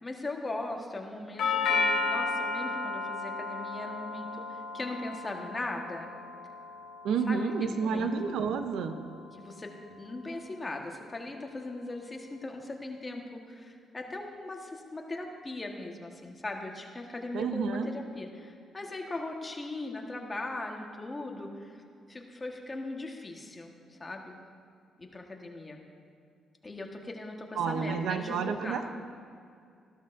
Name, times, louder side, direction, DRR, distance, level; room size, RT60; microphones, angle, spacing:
voice 1, 0.0-6.1 7.3-8.1 9.4-21.8 22.1-24.3 25.0-25.8 26.6-28.8, left 2 dB, 25° left, 2 dB, 1.3 m, -39 dB
Doorbell, 1.4-9.4, left 4 dB, 80° left, 0.9 m, -34 dB
voice 2, 7.0-9.0 17.3-17.9 27.6-28.9, right 5 dB, 80° right, 8 dB, 0.7 m, -30 dB
14.0 x 12.0 x 2.6 m, 2.4 s
cardioid pair, 90°, 0 cm